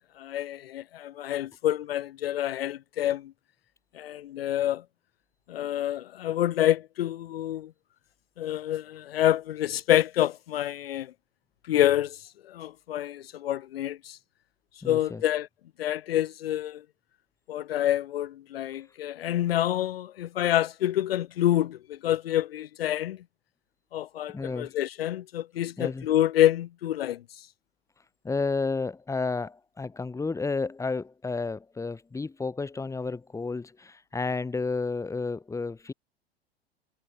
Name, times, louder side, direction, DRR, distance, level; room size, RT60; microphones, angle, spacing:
voice 1, 0.2-3.3 3.9-4.8 5.5-7.7 8.4-11.1 11.7-14.2 14.8-15.5 15.8-16.8 17.5-23.2 23.9-27.2, left 12 dB, 65° left, 0.8 m, -27 dB
voice 2, 14.8-15.2 24.3-24.7 25.8-26.1 28.2-35.9, left 4 dB, 10° left, 1.7 m, -31 dB
figure-of-eight pair, 90°, 32 cm